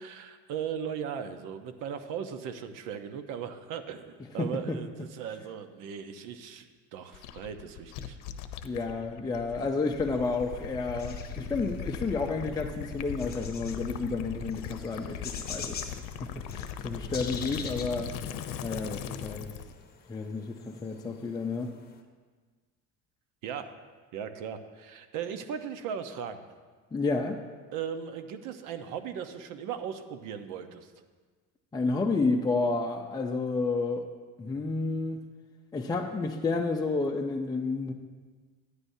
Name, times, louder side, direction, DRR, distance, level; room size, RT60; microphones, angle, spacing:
voice 1, 0.0-8.2 23.4-23.7 24.1-26.4 27.7-30.9, right 8 dB, 75° right, 8 dB, 0.9 m, -38 dB
voice 2, 4.4-4.8 8.6-15.9 16.2-18.3 18.6-19.5 20.1-21.7 26.9-27.4 31.7-34.1 34.4-35.3 35.7-37.9, left 3 dB, 10° left, 1 dB, 0.5 m, -31 dB
Gurgling / Liquid, 7.1-19.7, left 8 dB, 75° left, 0.8 m, -39 dB
sound 1, 10.1-22.0, left 5 dB, 30° left, 1.0 m, -46 dB
14.0 x 9.9 x 2.7 m, 1.5 s
cardioid pair, 125°, 32 cm